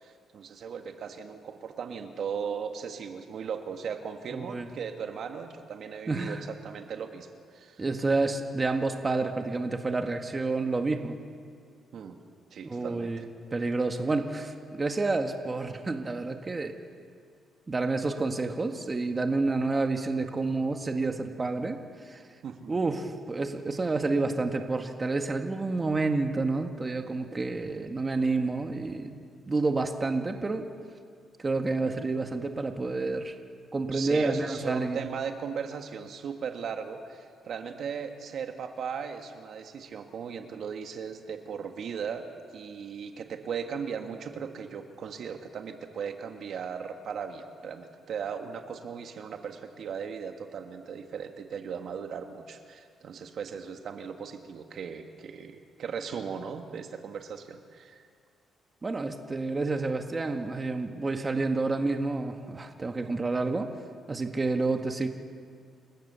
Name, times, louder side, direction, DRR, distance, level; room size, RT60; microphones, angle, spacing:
voice 1, 0.0-7.8 11.9-12.2 12.5-13.2 22.4-22.9 33.9-42.3 42.5-58.0, right 6 dB, 65° right, 6 dB, 1.7 m, -37 dB
voice 2, 4.3-4.7 6.1-6.4 7.8-11.2 12.6-13.3 13.5-16.8 17.7-21.8 22.0-22.2 22.7-29.2 29.5-30.7 31.4-33.3 33.7-35.0 58.8-63.7 64.1-65.1, right 3 dB, 25° right, 5 dB, 1.6 m, -29 dB
28.5 x 15.5 x 7.0 m, 2.1 s
cardioid pair, 90°, 0 cm